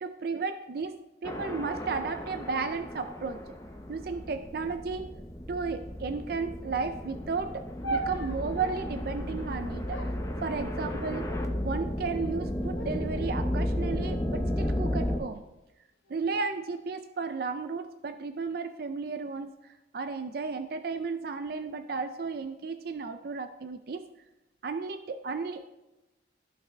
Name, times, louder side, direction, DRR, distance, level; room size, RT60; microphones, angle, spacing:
voice 1, 0.0-3.5 3.9-5.2 5.5-10.1 10.4-11.3 11.6-15.4 16.1-24.1 24.6-25.7, right 4 dB, 50° right, 9 dB, 0.4 m, -34 dB
sound 1, 1.2-15.2, left 1 dB, 15° left, 0.6 m, -34 dB
sound 2, 7.8-9.1 9.9-11.1 11.9-12.4 12.7-13.3 14.0-15.3 16.1-16.5, right 2 dB, 85° left, 0.8 m, -40 dB
13.5 x 5.9 x 3.3 m, 0.99 s
head